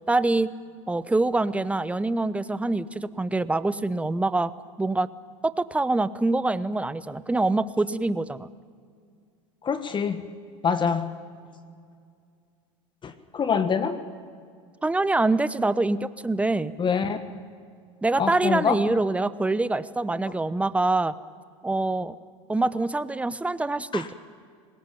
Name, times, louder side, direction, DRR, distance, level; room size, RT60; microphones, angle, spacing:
voice 1, 0.1-0.5 0.9-4.5 4.8-5.1 5.4-8.5 14.8-16.7 18.0-21.1 21.6-22.1 22.5-24.1, right 2 dB, 10° right, 16 dB, 0.8 m, -25 dB
voice 2, 9.6-10.2 10.6-11.1 13.0-14.0 16.8-17.2 18.2-18.7 23.9-24.1, left 6 dB, 30° left, 10 dB, 1.4 m, -25 dB
21.5 x 18.0 x 9.2 m, 2.2 s
hypercardioid pair, 95°, 17 cm